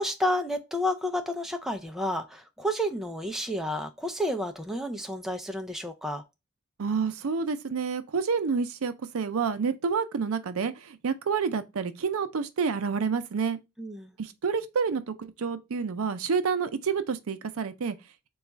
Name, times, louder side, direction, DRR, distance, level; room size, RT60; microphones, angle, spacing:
voice 1, 0.0-6.2 13.8-14.1, equal, ahead, 0.3 m, -30 dB
voice 2, 6.8-13.6 14.2-18.0, right 5 dB, 80° right, 0.5 m, -29 dB
4.0 x 2.3 x 4.4 m
head